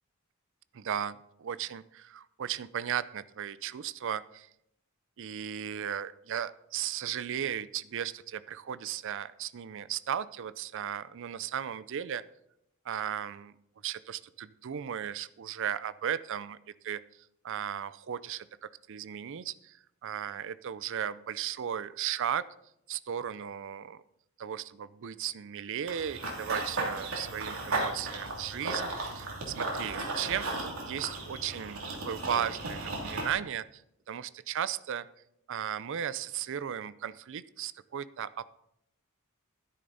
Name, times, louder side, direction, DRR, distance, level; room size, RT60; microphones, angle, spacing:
voice 1, 0.7-4.5 5.2-12.2 12.8-13.5 13.8-16.6 16.8-17.0 17.4-22.4 22.9-24.0 24.4-33.8 34.1-35.1 35.5-38.6, right 9 dB, 60° right, 16 dB, 0.4 m, -36 dB
Run / Bird vocalization bird call bird song, 25.9-33.3, right 2 dB, 80° right, 2.7 m, -35 dB
12.0 x 10.0 x 4.0 m, 0.79 s
head